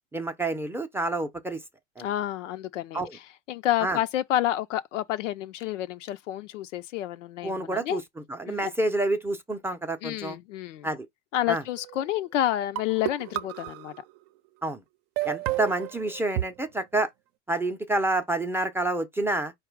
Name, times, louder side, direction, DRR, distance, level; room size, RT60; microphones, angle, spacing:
voice 1, 0.1-1.6 2.0-2.1 2.9-3.1 3.8-4.0 7.4-8.0 8.3-10.4 10.8-11.1 11.5-11.6 14.6-14.8 15.2-17.1 17.5-19.5, right 2 dB, 5° right, 0.6 m, -28 dB
voice 2, 2.0-8.0 8.5-8.7 10.0-10.9 11.3-13.9, left 12 dB, 85° left, 0.7 m, -29 dB
sound 1, 11.8-12.2 12.8-14.2 15.2-16.4, right 16 dB, 50° right, 0.6 m, -32 dB
4.8 x 2.3 x 4.6 m
supercardioid pair, 120°, 37 cm